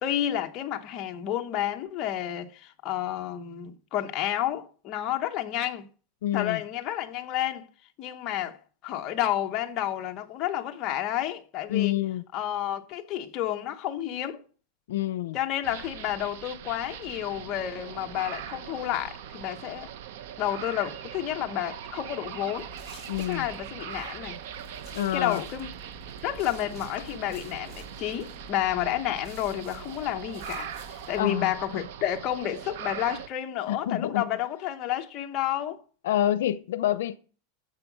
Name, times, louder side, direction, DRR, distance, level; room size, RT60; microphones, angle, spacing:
voice 1, 0.0-5.9 6.3-7.7 8.0-11.9 12.3-14.4 15.3-19.9 20.4-24.4 25.1-25.7 26.2-35.8, left 12 dB, 30° left, 0.9 m, -30 dB
voice 2, 6.2-6.6 11.7-12.2 14.9-15.4 23.1-23.5 24.9-25.4 31.2-31.8 33.7-34.3 36.0-37.2, left 12 dB, 80° left, 0.6 m, -27 dB
sound 1, 15.6-33.3, right 9 dB, 60° right, 0.8 m, -41 dB
sound 2, 22.6-31.2, left 2 dB, 15° right, 6.6 m, -50 dB
9.6 x 7.1 x 6.0 m
supercardioid pair, 175°, 0 cm